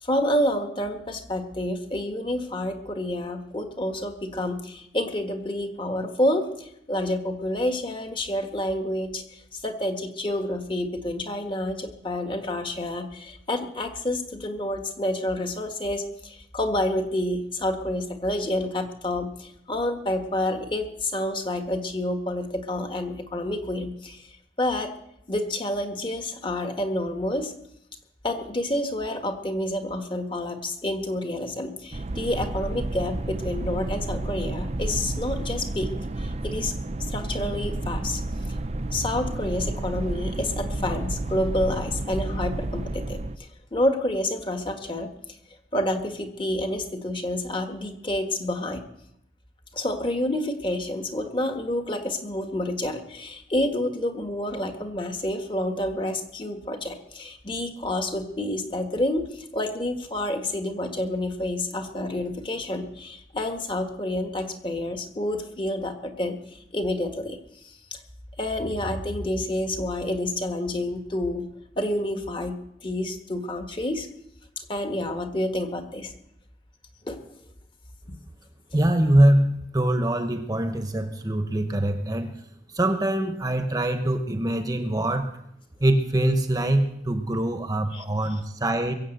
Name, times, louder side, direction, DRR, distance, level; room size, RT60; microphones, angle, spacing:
voice 1, 0.0-24.3 24.6-24.9 25.3-27.5 28.2-35.9 36.2-36.7 37.1-38.2 38.9-43.2 43.7-45.1 45.7-48.8 49.7-67.4 67.6-68.0 68.4-71.5 71.7-74.1 74.7-76.1 77.0-77.2 87.9-88.0, left 1 dB, 30° left, 5 dB, 1.5 m, -29 dB
sound 1, 31.9-43.4, right 2 dB, 35° right, 0.6 m, -31 dB
voice 2, 78.7-82.3 82.7-85.3 85.8-88.9, right 1 dB, 20° right, 7 dB, 0.9 m, -23 dB
22.0 x 7.4 x 7.8 m, 0.76 s
head